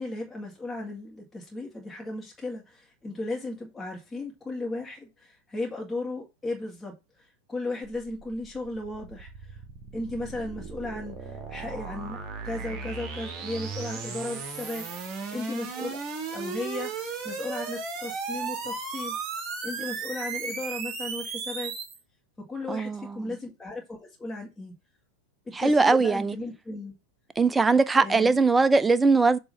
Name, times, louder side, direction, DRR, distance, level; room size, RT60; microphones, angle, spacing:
voice 1, 0.0-6.9 7.5-9.6 9.9-16.0 16.3-19.2 19.6-21.7 22.5-24.7 25.6-26.9 28.0-28.4, left 2 dB, 15° left, 2.1 m, -35 dB
sound 1, 7.8-22.0, right 5 dB, 30° right, 1.4 m, -36 dB
voice 2, 22.7-23.0 25.5-26.3 27.4-29.4, right 3 dB, 10° right, 0.5 m, -21 dB
6.9 x 3.0 x 5.2 m
figure-of-eight pair, 90°, 0 cm